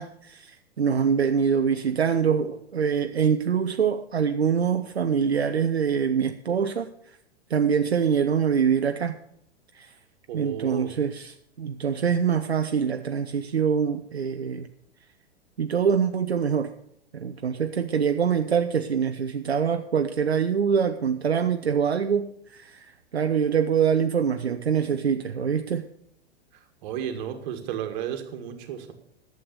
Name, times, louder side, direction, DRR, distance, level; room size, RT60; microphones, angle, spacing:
voice 1, 0.0-6.9 7.5-9.2 9.7-9.9 10.3-14.7 15.6-16.7 17.1-25.9, right 7 dB, 75° right, 7 dB, 0.7 m, -24 dB
voice 2, 10.3-10.9 26.5-28.9, right 9 dB, 45° right, 6 dB, 1.8 m, -33 dB
11.5 x 7.8 x 6.8 m, 0.72 s
figure-of-eight pair, 100°, 32 cm